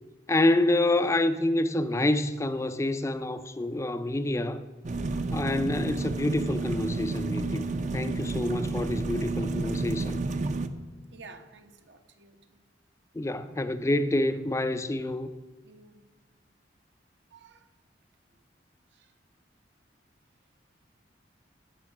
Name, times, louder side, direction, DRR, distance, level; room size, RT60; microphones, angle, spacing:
voice 1, 0.3-4.6 5.3-7.6 7.9-10.2 13.1-15.3, left 1 dB, 15° left, 0.4 m, -27 dB
sound 1, 4.8-10.7, right 3 dB, 40° right, 0.6 m, -31 dB
voice 2, 11.1-12.6 15.6-16.1 17.3-17.7 18.9-19.1, right 4 dB, 70° right, 1.1 m, -52 dB
16.5 x 5.5 x 5.9 m
head